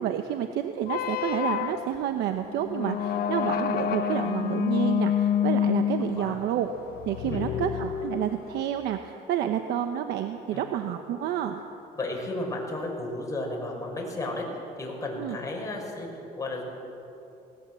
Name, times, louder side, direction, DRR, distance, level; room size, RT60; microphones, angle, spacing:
voice 1, 0.0-6.7 7.1-11.6 15.2-15.4, right 10 dB, 80° right, 7 dB, 1.0 m, -29 dB
sound 1, 0.8-8.6, left 9 dB, 65° left, 1.0 m, -28 dB
voice 2, 7.2-7.6 10.5-10.6 11.9-16.6, left 2 dB, 20° left, -1 dB, 5.9 m, -33 dB
20.0 x 17.5 x 7.7 m, 2.9 s
cardioid pair, 110°, 17 cm